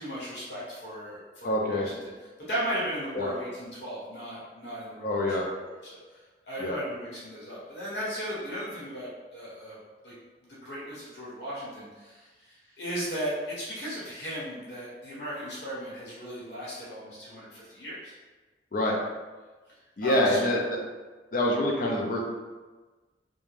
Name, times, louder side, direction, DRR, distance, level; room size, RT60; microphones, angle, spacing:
voice 1, 0.0-9.8 10.0-10.1 10.4-18.1 19.7-19.8 20.0-20.4, equal, 75° left, -8 dB, 1.0 m, -36 dB
voice 2, 1.4-1.9 3.1-3.3 5.0-5.5 6.6-6.8 18.7-19.0 20.0-20.8 21.3-22.2, left 1 dB, 50° left, -1 dB, 0.4 m, -26 dB
2.5 x 2.2 x 3.2 m, 1.3 s
head